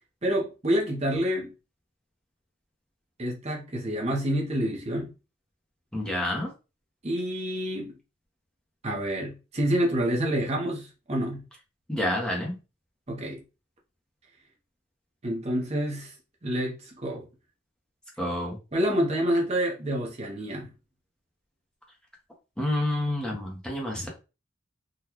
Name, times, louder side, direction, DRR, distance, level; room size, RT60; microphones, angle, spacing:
voice 1, 0.2-1.5 3.2-5.1 7.0-7.9 8.8-11.4 13.1-13.4 15.2-16.2 16.4-17.3 18.7-20.7, equal, 30° right, 0.7 m, -28 dB
voice 2, 5.9-6.5 11.9-12.5 18.2-18.6 22.6-24.1, left 1 dB, 5° left, 0.8 m, -28 dB
3.8 x 2.2 x 2.9 m
head